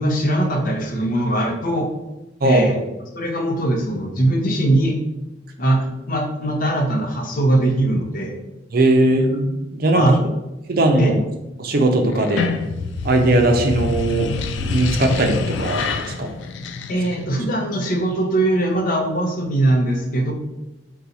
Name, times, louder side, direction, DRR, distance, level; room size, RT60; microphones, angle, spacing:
voice 1, 0.0-1.9 2.4-2.7 3.1-5.0 5.6-8.4 9.9-10.2 10.9-11.1 16.9-20.3, right 1 dB, 50° left, 2 dB, 0.7 m, -20 dB
voice 2, 2.4-2.8 8.7-10.1 10.7-11.2 11.6-12.5 13.0-14.3 14.6-16.3, right 1 dB, 55° right, 3 dB, 0.6 m, -19 dB
sound 1, 12.1-17.4, left 4 dB, 80° left, 0.3 m, -26 dB
3.9 x 2.3 x 4.1 m, 0.99 s
head